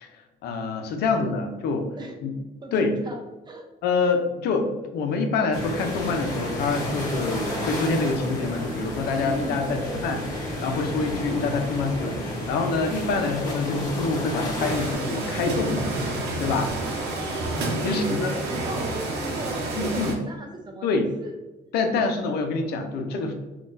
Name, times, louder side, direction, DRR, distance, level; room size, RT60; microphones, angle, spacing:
voice 1, 0.4-1.9 2.2-2.3 2.7-3.0 3.8-10.2 10.6-15.9 16.4-16.7 17.8-18.3 19.7-20.1 20.8-21.1 21.7-23.3, left 4 dB, 75° left, 5 dB, 0.6 m, -26 dB
voice 2, 1.0-1.4 2.0-2.2 2.6-3.7 9.2-10.1 16.8-21.4, right 1 dB, 25° right, 2 dB, 0.7 m, -37 dB
sound 1, 5.5-15.0, left 1 dB, 20° left, 1.3 m, -31 dB
sound 2, 5.8-17.2, left 2 dB, 50° left, 0.9 m, -46 dB
sound 3, 14.6-20.1, right 2 dB, 80° right, 0.7 m, -29 dB
3.8 x 2.4 x 2.5 m, 1.1 s
cardioid pair, 110°, 17 cm